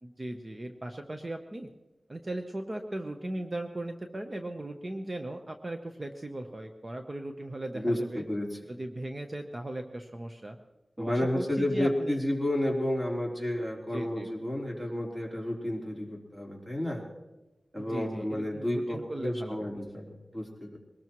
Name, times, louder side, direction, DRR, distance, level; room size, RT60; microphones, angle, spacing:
voice 1, 0.0-1.7 2.1-8.2 8.7-10.6 11.0-12.2 13.9-14.3 17.8-19.7, right 1 dB, 30° right, 4 dB, 0.9 m, -38 dB
voice 2, 7.7-8.7 11.0-17.0 17.7-20.8, left 1 dB, 10° right, -2 dB, 3.9 m, -31 dB
22.0 x 19.5 x 3.1 m, 1.1 s
wide cardioid pair, 100°, 0 cm